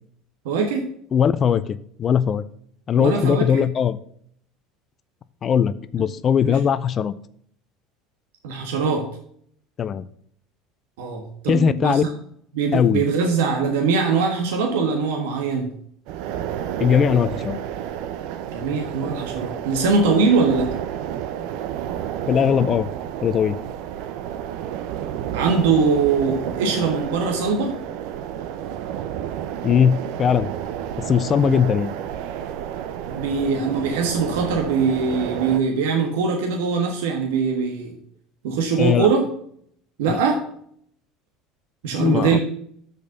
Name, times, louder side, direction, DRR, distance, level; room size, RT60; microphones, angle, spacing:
voice 1, 0.4-0.9 3.0-3.6 6.4-6.6 8.4-9.1 11.0-12.1 12.5-15.8 18.5-20.7 25.3-27.8 31.4-31.5 33.1-38.0 38.4-39.3 40.0-40.4 41.8-42.4, right 5 dB, 90° right, 2 dB, 1.4 m, -22 dB
voice 2, 1.1-2.4 2.9-4.0 5.4-7.1 9.8-10.0 11.5-12.0 12.7-13.0 16.8-17.6 22.3-22.9 23.2-23.6 29.6-30.5 31.1-31.9 38.8-39.1 40.1-40.2 42.0-42.4, left 8 dB, 35° left, 15 dB, 0.5 m, -19 dB
sound 1, 16.1-35.6, right 10 dB, 70° right, 0.7 m, -31 dB
6.5 x 5.2 x 6.6 m, 0.65 s
supercardioid pair, 115°, 0 cm